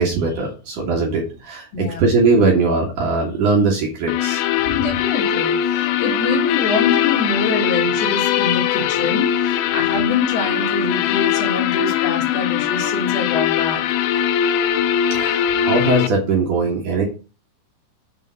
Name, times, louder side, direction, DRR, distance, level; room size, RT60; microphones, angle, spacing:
voice 1, 0.0-4.4 15.1-17.0, right 3 dB, 55° right, -2 dB, 2.6 m, -20 dB
sound 1, 4.1-16.1, left 10 dB, 90° left, 2.1 m, -20 dB
voice 2, 4.7-13.8, left 3 dB, 65° left, 1 dB, 3.3 m, -25 dB
6.9 x 3.7 x 6.3 m, 0.34 s
omnidirectional pair, 5.0 m